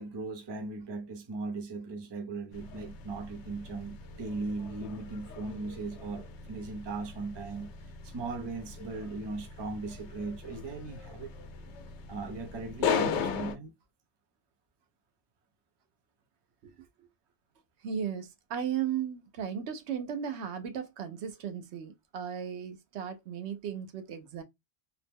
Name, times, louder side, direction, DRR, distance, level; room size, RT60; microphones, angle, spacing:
voice 1, 0.0-7.7 8.0-11.3 12.1-13.7, right 3 dB, 30° right, 0.5 m, -38 dB
sound 1, 2.5-13.5, left 6 dB, 85° left, 0.9 m, -38 dB
voice 2, 17.8-24.4, right 8 dB, 80° right, 0.9 m, -36 dB
2.8 x 2.0 x 3.4 m
omnidirectional pair, 1.1 m